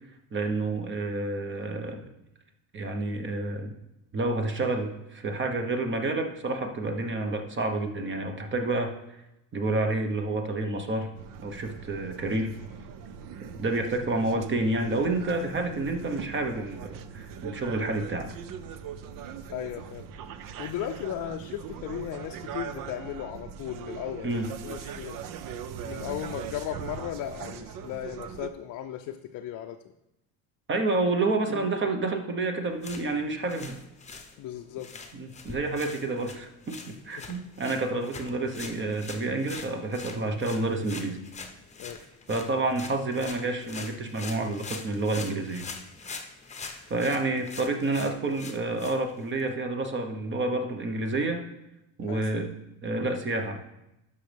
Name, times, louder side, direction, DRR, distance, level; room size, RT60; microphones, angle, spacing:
voice 1, 0.3-2.0 2.7-3.7 4.1-8.9 9.5-11.1 11.4-12.5 13.4-18.3 24.2-24.5 30.7-33.8 35.1-41.2 42.3-45.7 46.7-51.4 52.0-52.5 52.8-53.6, right 2 dB, 30° right, 5 dB, 1.1 m, -29 dB
sound 1, 11.2-28.5, right 8 dB, 60° right, 0.7 m, -41 dB
voice 2, 19.5-20.1 20.6-25.2 25.8-29.8 31.5-31.7 34.4-34.9 37.2-37.4 41.8-42.0 52.0-52.5, left 11 dB, 50° left, 5 dB, 0.5 m, -36 dB
sound 2, 32.7-49.5, left 4 dB, 20° left, 0.8 m, -44 dB
12.5 x 5.5 x 3.4 m, 0.89 s
cardioid pair, 120°, 38 cm